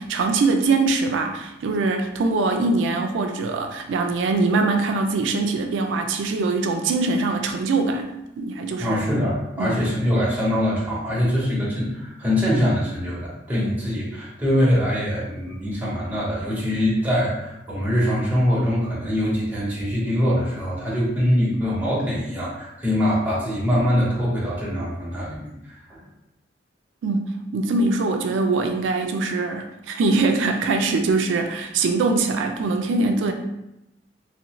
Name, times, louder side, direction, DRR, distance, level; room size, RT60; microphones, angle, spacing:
voice 1, 0.0-8.1 8.4-9.0 9.6-9.8 27.0-33.3, right 3 dB, 90° right, 5 dB, 0.3 m, -22 dB
voice 2, 8.8-25.5 25.9-26.0, equal, 10° right, -7 dB, 0.9 m, -23 dB
2.7 x 2.5 x 3.0 m, 0.88 s
head